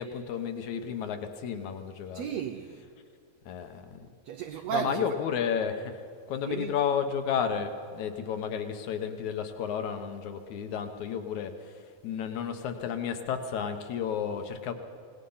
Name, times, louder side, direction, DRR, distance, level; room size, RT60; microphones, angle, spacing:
voice 1, 0.0-2.3 3.5-4.1 4.7-6.0 6.3-14.7, left 7 dB, 65° left, 2.2 m, -32 dB
voice 2, 2.1-2.9 3.9-5.2 6.4-6.8, right 9 dB, 90° right, 1.5 m, -35 dB
26.5 x 18.5 x 5.6 m
omnidirectional pair, 4.0 m